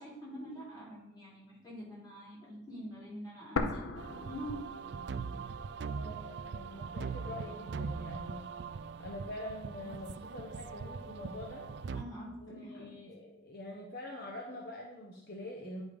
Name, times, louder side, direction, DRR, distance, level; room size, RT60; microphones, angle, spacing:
voice 1, 0.0-4.6 11.9-12.9, equal, 20° left, -7 dB, 3.7 m, -45 dB
sound 1, 3.6-5.5 5.8-5.9 6.6-7.6, left 3 dB, 90° left, 0.8 m, -38 dB
sound 2, 4.0-12.0, right 5 dB, 55° right, 0.3 m, -41 dB
voice 2, 5.9-8.5 9.0-11.7 12.4-15.8, left 1 dB, 50° left, -1 dB, 1.1 m, -45 dB
10.0 x 5.2 x 5.2 m, 0.91 s
head